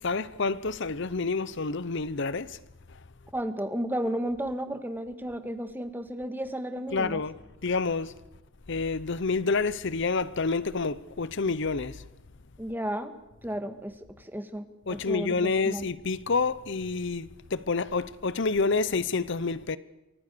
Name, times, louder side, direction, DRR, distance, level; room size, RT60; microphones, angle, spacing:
voice 1, 0.0-2.6 6.9-7.4 7.6-8.1 8.7-12.0 14.9-19.8, left 4 dB, 55° left, 0.8 m, -28 dB
voice 2, 3.3-7.2 12.6-15.9, right 1 dB, 10° right, 1.8 m, -33 dB
29.0 x 24.5 x 6.9 m
head